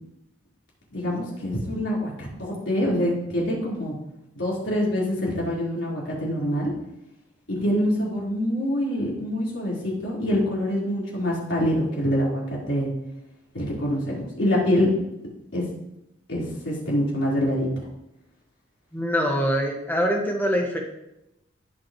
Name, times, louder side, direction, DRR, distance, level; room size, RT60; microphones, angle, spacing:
voice 1, 0.9-3.9 4.3-6.7 7.5-12.9 13.5-14.9 15.5-15.7 16.3-17.7, equal, 90° left, -5 dB, 4.2 m, -25 dB
voice 2, 18.9-20.8, equal, 10° left, 0 dB, 1.5 m, -24 dB
17.5 x 6.4 x 3.1 m, 0.86 s
head